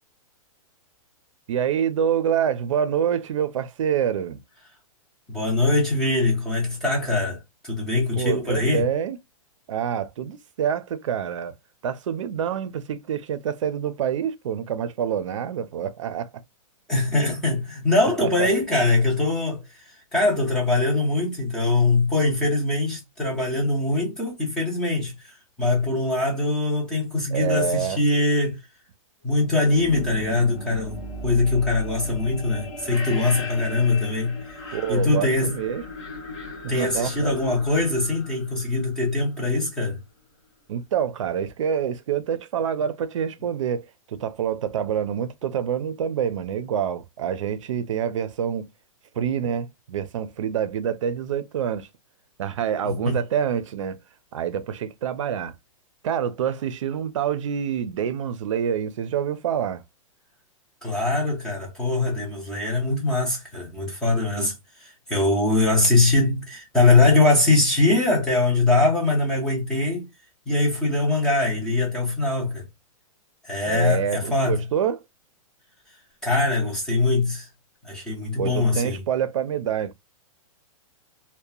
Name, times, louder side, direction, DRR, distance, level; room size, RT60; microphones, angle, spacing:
voice 1, 1.5-4.4 8.1-9.2 9.7-11.5 11.8-16.3 18.2-18.5 27.3-28.0 34.7-35.8 36.6-37.3 40.7-48.7 49.2-51.9 52.4-54.0 54.3-55.5 56.0-59.8 73.7-75.0 78.4-79.9, right 8 dB, 60° right, 0.5 m, -26 dB
voice 2, 5.3-8.9 16.9-19.6 20.1-28.6 29.2-34.4 34.9-35.5 36.7-40.0 52.8-53.2 60.8-70.1 70.5-72.7 73.4-74.6 76.2-77.5 77.8-79.0, left 2 dB, 5° left, 0.5 m, -22 dB
sound 1, 29.5-39.4, left 1 dB, 35° left, 1.1 m, -37 dB
2.8 x 2.1 x 2.2 m
hypercardioid pair, 180°, 18 cm